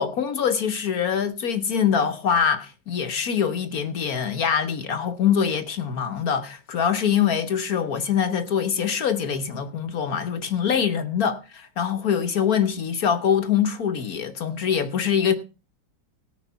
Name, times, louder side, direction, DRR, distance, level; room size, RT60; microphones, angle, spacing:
voice 1, 0.0-15.3, left 7 dB, 60° left, 1.3 m, -24 dB
18.5 x 6.4 x 5.5 m
omnidirectional pair, 1.9 m